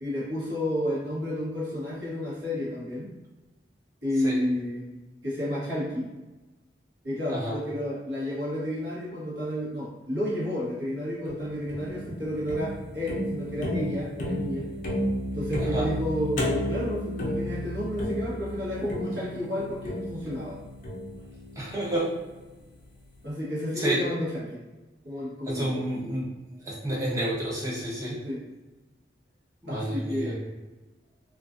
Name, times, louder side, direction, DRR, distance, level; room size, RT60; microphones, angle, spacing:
voice 1, 0.0-3.1 4.0-4.9 5.2-6.1 7.0-14.7 15.3-20.6 23.2-24.6 25.0-25.8 28.2-28.4 29.7-30.5, left 1 dB, 70° right, -7 dB, 1.0 m, -31 dB
sound 1, 11.3-22.5, equal, 45° left, 0.4 m, -33 dB
voice 2, 21.6-22.1 23.8-24.0 25.5-26.3 26.6-28.2 29.6-30.3, right 1 dB, 20° right, -5 dB, 0.5 m, -29 dB
2.3 x 2.3 x 2.4 m, 1.1 s
head